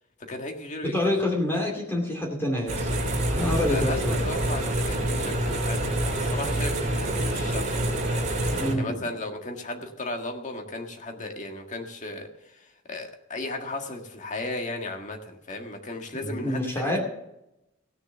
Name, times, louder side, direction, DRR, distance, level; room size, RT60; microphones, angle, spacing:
voice 1, 0.3-1.1 3.4-8.2 8.8-12.3 12.9-17.0, left 2 dB, 40° left, 3 dB, 1.7 m, -35 dB
voice 2, 0.8-2.9 3.3-4.1 8.5-9.1 16.2-17.0, left 1 dB, 15° left, -1 dB, 2.5 m, -27 dB
sound 1, 2.7-8.7, right 1 dB, 40° right, 3.0 m, -26 dB
16.5 x 6.9 x 6.8 m, 0.88 s
head